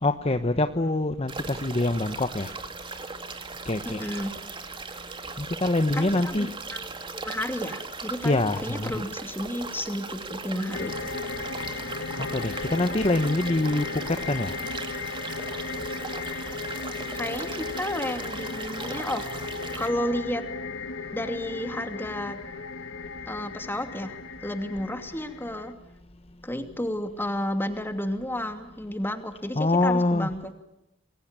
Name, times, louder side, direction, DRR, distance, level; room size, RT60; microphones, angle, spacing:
voice 1, 0.0-2.5 3.6-4.2 5.4-6.5 8.2-9.0 12.2-14.5 29.5-30.3, left 2 dB, 30° left, 8 dB, 1.1 m, -25 dB
sound 1, 1.3-19.9, right 4 dB, 25° right, 2.4 m, -38 dB
voice 2, 3.8-4.3 5.9-11.1 17.1-19.3 19.7-20.4 21.1-22.4 23.3-25.7 26.4-30.5, left 1 dB, 10° left, 7 dB, 2.7 m, -32 dB
sound 2, 10.7-25.7, left 4 dB, 85° left, 2.0 m, -36 dB
28.5 x 21.5 x 9.1 m, 0.90 s
head